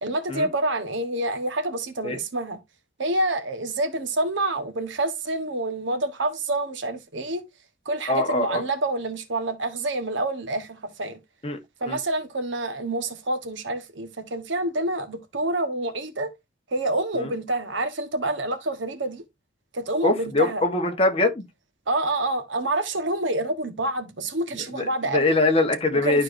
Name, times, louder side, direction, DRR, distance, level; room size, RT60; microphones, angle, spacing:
voice 1, 0.0-2.6 3.0-7.4 7.8-11.2 11.8-16.3 16.7-19.2 19.7-20.6 21.9-25.3 26.0-26.2, right 2 dB, 75° right, 1.2 m, -27 dB
voice 2, 8.1-8.6 11.4-11.6 11.9-12.0 17.1-17.3 20.0-21.5 24.7-24.8 25.1-26.2, left 2 dB, 30° left, 1.2 m, -22 dB
12.0 x 4.5 x 2.6 m
head